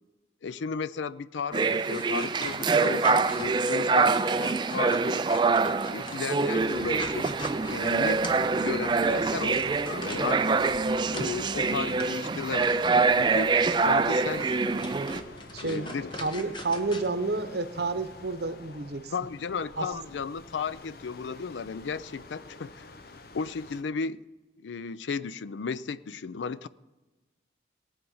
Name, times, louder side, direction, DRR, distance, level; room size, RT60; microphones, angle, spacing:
voice 1, 0.4-5.2 5.9-8.2 8.6-10.5 11.1-12.8 13.2-14.9 15.6-16.1 19.1-22.9 23.3-24.2 24.6-26.7, left 5 dB, 85° left, 0.4 m, -35 dB
sound 1, 1.5-15.2, right 4 dB, 25° right, 0.3 m, -25 dB
sound 2, 1.7-11.5 12.0-12.3 12.6-12.8 13.4-17.1, left 2 dB, 25° left, 1.0 m, -43 dB
sound 3, 6.6-23.8, left 3 dB, 55° left, 0.7 m, -47 dB
voice 2, 15.5-15.9 16.1-19.1 19.8-19.9, right 3 dB, 60° right, 0.8 m, -30 dB
19.0 x 7.2 x 5.5 m
head